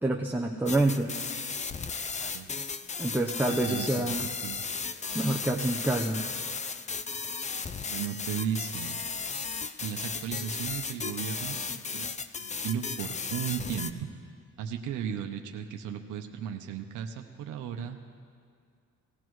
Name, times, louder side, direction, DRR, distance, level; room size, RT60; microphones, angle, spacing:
voice 1, 0.0-1.1 3.0-4.3 5.1-6.2, right 2 dB, 5° right, 0 dB, 0.8 m, -27 dB
sound 1, 0.7-13.9, left 5 dB, 25° left, 0.5 m, -35 dB
voice 2, 3.5-4.6 7.8-9.0 9.8-14.1 14.6-18.0, right 8 dB, 85° right, 4 dB, 0.8 m, -36 dB
19.5 x 14.5 x 3.1 m, 2.2 s
cardioid pair, 90°, 30 cm